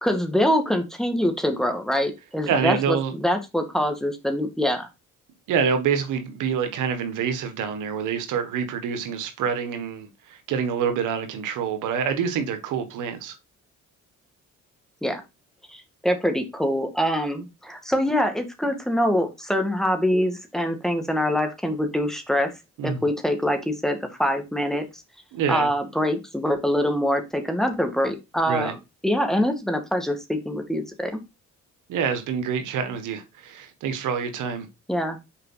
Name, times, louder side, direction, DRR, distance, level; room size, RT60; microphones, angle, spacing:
voice 1, 0.0-4.9 15.0-15.2 15.7-22.5 22.8-25.0 25.5-28.8 29.0-31.2 34.9-35.2, equal, ahead, 2.0 m, -24 dB
voice 2, 2.5-3.1 5.5-13.3 22.8-23.0 25.3-25.7 28.5-28.7 31.9-34.7, right 7 dB, 85° right, 1.4 m, -26 dB
6.4 x 4.6 x 4.0 m
cardioid pair, 90°, 30 cm